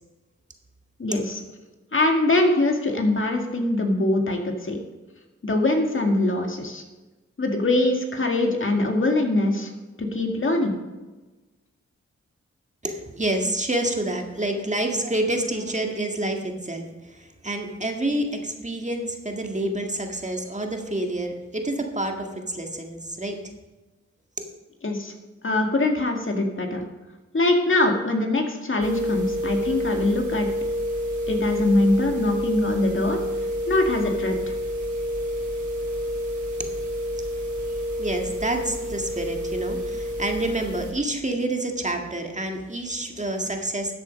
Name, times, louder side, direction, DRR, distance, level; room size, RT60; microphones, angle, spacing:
voice 1, 1.0-1.4 1.9-4.8 5.4-6.8 7.4-9.7 10.0-10.7 24.8-25.1 25.4-26.8 27.3-30.5 31.3-33.2 33.7-34.5, left 2 dB, 45° left, 3 dB, 2.0 m, -23 dB
voice 2, 12.8-23.4 24.4-24.5 38.0-43.9, right 1 dB, 25° right, 3 dB, 1.8 m, -28 dB
sound 1, 28.8-40.9, equal, 70° right, 4.8 m, -29 dB
13.0 x 8.0 x 5.2 m, 1.2 s
cardioid pair, 60°, 29 cm